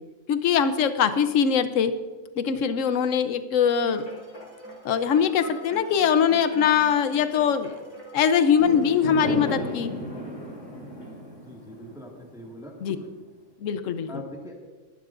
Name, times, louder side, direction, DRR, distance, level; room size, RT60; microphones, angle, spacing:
voice 1, 0.3-1.9 2.4-4.0 4.8-7.7 8.1-9.9 12.8-13.0 13.6-14.2, left 7 dB, 75° left, 11 dB, 1.1 m, -22 dB
sound 1, 3.6-10.2 10.7-10.8, left 1 dB, 25° left, 3.8 m, -45 dB
Fireworks, 8.6-13.0, equal, 55° left, 3.4 m, -35 dB
voice 2, 11.3-13.1 14.1-14.6, equal, 5° right, -1 dB, 1.8 m, -42 dB
21.5 x 12.0 x 2.5 m, 1.3 s
omnidirectional pair, 1.4 m